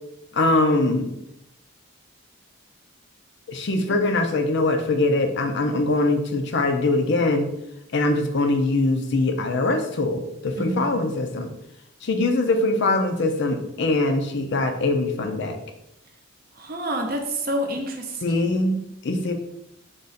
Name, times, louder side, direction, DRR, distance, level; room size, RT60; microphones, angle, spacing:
voice 1, 0.3-1.1 3.5-7.5 7.9-11.5 12.0-15.6 18.2-19.3, left 2 dB, 50° left, 6 dB, 0.5 m, -22 dB
voice 2, 10.6-10.9 16.5-18.5, right 1 dB, 40° right, 2 dB, 0.6 m, -28 dB
3.7 x 2.9 x 4.1 m, 0.83 s
head